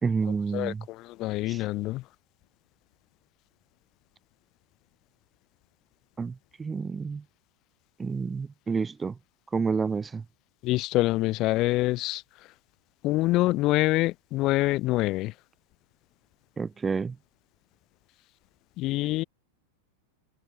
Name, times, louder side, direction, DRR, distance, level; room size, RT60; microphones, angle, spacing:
voice 1, 0.0-0.9 1.5-1.6 6.2-7.2 8.0-9.2 9.5-10.2 16.6-17.2, right 5 dB, 15° right, 1.2 m, -29 dB
voice 2, 0.5-2.0 10.6-12.2 13.0-15.3 18.8-19.2, left 18 dB, 40° left, 2.4 m, -25 dB
figure-of-eight pair, 90°, 0 cm